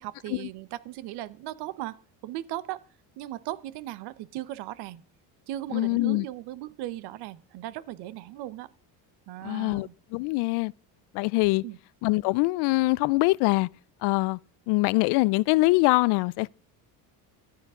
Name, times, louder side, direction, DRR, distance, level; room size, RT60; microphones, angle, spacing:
voice 1, 0.0-2.8 3.2-5.0 5.5-8.7 9.3-9.9 11.6-11.8, right 14 dB, 75° right, 1.0 m, -37 dB
voice 2, 5.7-6.2 9.4-10.7 11.1-11.6 12.0-13.7 14.0-14.4 14.7-16.5, left 23 dB, 80° left, 0.5 m, -23 dB
14.0 x 12.0 x 3.7 m
cardioid pair, 150°, 40 cm